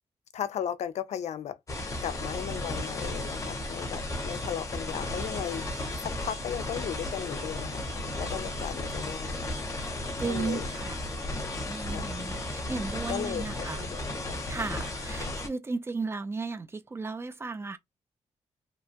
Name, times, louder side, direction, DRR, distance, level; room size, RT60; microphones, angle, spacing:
voice 1, 0.3-1.6 2.0-5.6 6.0-7.8 8.2-9.4 10.3-10.7 11.8-12.1 13.1-14.0 14.3-14.4, left 9 dB, 75° left, 0.4 m, -36 dB
sound 1, 1.7-15.5, left 2 dB, 30° left, 0.7 m, -34 dB
voice 2, 10.2-11.0 11.7-13.9 14.5-17.8, right 4 dB, 20° right, 0.3 m, -35 dB
2.8 x 2.2 x 2.7 m
wide cardioid pair, 160°, 12 cm